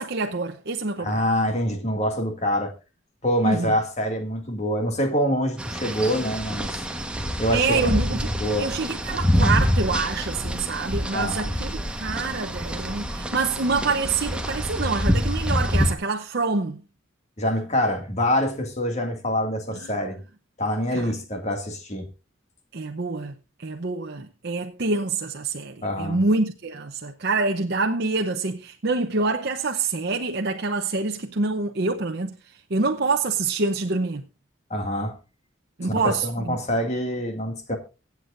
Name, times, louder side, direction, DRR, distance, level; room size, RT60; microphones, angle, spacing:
voice 1, 0.0-1.2 3.4-3.7 7.5-8.3 8.6-16.8 20.9-21.0 22.7-23.3 23.6-32.3 32.7-34.2 35.8-36.6, right 3 dB, 55° right, 0.8 m, -26 dB
voice 2, 1.0-2.7 3.2-6.8 7.4-8.7 11.1-11.5 17.4-20.2 20.6-22.1 25.8-26.2 34.7-35.2 35.8-37.8, equal, 35° left, 2.2 m, -25 dB
sound 1, 5.6-15.9, equal, 5° right, 1.2 m, -26 dB
24.5 x 8.2 x 2.5 m
head